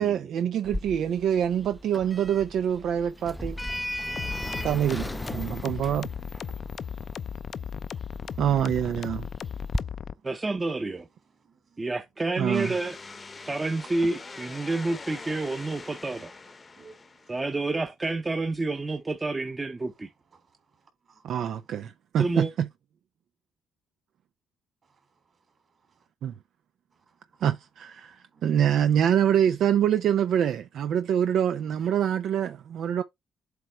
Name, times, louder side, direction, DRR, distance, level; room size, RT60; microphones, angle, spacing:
voice 1, 0.0-3.6 4.6-6.1 8.4-9.3 12.4-12.7 21.2-22.7 26.2-26.3 27.4-33.0, right 9 dB, 70° right, 0.5 m, -25 dB
Sliding door, 0.7-9.8, left 1 dB, 5° left, 0.5 m, -37 dB
voice 2, 3.8-4.2 6.5-7.7 8.2-8.4 9.6-10.2 11.4-11.8 14.0-14.1 16.7-17.3 20.3-21.2 24.9-25.0 27.1-27.2 28.3-28.5, right 5 dB, 45° right, 3.3 m, -54 dB
sound 1, 4.2-10.1, left 7 dB, 55° left, 0.5 m, -36 dB
voice 3, 10.2-11.1 11.8-13.0 13.4-16.3 17.3-20.1 22.2-22.5, right 2 dB, 25° right, 0.9 m, -29 dB
sound 2, 12.5-17.7, left 4 dB, 30° left, 0.8 m, -44 dB
7.9 x 3.3 x 4.5 m
cardioid pair, 90°, 0 cm